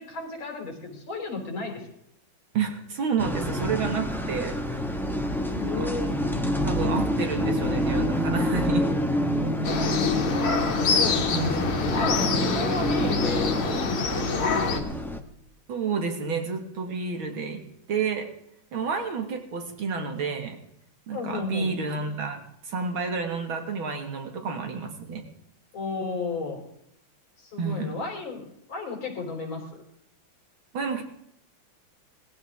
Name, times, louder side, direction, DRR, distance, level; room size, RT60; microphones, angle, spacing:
voice 1, 0.0-1.9 5.5-6.2 9.4-10.4 10.8-11.4 11.9-14.4 21.1-21.7 25.7-26.6 27.4-29.8, left 3 dB, 70° left, 2 dB, 4.4 m, -34 dB
voice 2, 2.5-4.9 5.6-5.7 6.6-8.9 11.3-11.5 15.7-17.6 17.9-18.3 18.7-20.6 21.1-25.2 27.6-27.9 30.7-31.0, right 5 dB, 75° right, 4 dB, 2.6 m, -30 dB
sound 1, 3.2-15.2, equal, ahead, 1.1 m, -27 dB
sound 2, 9.6-14.8, left 4 dB, 85° left, 2.5 m, -26 dB
20.0 x 15.0 x 3.6 m, 0.77 s
omnidirectional pair, 2.3 m